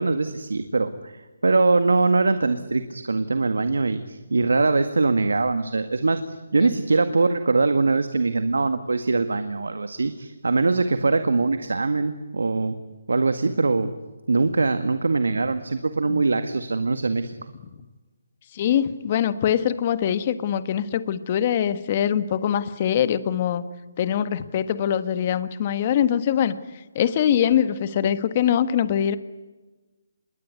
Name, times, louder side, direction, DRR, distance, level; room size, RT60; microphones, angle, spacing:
voice 1, 0.0-12.8 13.1-13.9 14.3-17.3, right 3 dB, 90° right, 9 dB, 1.8 m, -22 dB
voice 2, 18.5-23.6 24.0-26.6 26.9-29.2, left 9 dB, 35° left, 12 dB, 1.4 m, -23 dB
27.0 x 21.5 x 9.5 m, 1.2 s
hypercardioid pair, 160°, 0 cm